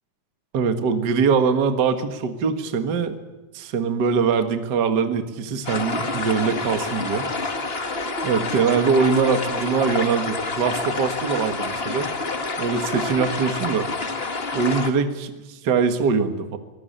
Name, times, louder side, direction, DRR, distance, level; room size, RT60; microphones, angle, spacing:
voice 1, 0.5-3.2 3.5-7.3 8.2-12.1 12.6-13.9 14.5-16.6, right 5 dB, 45° right, 8 dB, 1.6 m, -22 dB
sound 1, 5.6-14.9, left 3 dB, 85° left, 0.5 m, -28 dB
24.5 x 18.0 x 8.8 m, 1.2 s
omnidirectional pair, 4.0 m